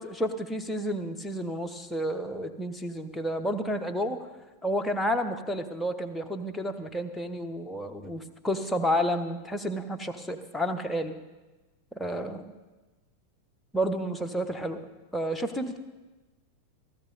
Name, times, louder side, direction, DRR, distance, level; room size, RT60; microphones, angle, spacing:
voice 1, 0.0-4.3 4.6-11.1 11.9-12.4 13.7-14.8 15.1-15.8, equal, 5° left, 4 dB, 1.1 m, -30 dB
15.5 x 14.0 x 4.1 m, 1.2 s
figure-of-eight pair, 90°, 0 cm